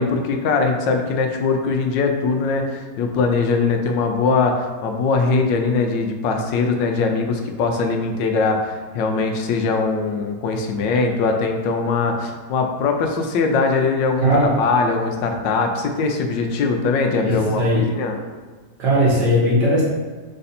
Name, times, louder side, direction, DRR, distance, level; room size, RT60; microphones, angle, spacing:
voice 1, 0.0-14.3 14.6-18.2, left 4 dB, 85° left, 4 dB, 1.3 m, -21 dB
voice 2, 14.2-14.5 17.2-17.9 18.8-19.8, equal, 75° right, -5 dB, 1.7 m, -18 dB
4.1 x 2.6 x 4.1 m, 1.4 s
omnidirectional pair, 1.9 m